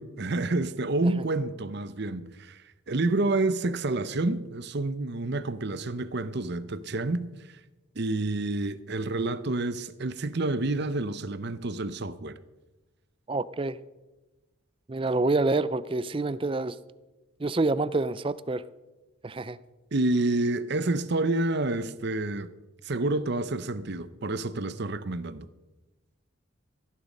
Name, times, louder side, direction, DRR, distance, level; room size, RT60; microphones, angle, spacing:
voice 1, 0.0-2.6 2.9-7.3 8.0-12.4 19.9-22.5 22.8-25.5, right 2 dB, 50° right, 0.7 m, -28 dB
voice 2, 13.3-13.8 14.9-16.8 17.4-18.6 19.2-19.6, right 2 dB, 25° right, 0.4 m, -27 dB
16.0 x 10.5 x 5.3 m
head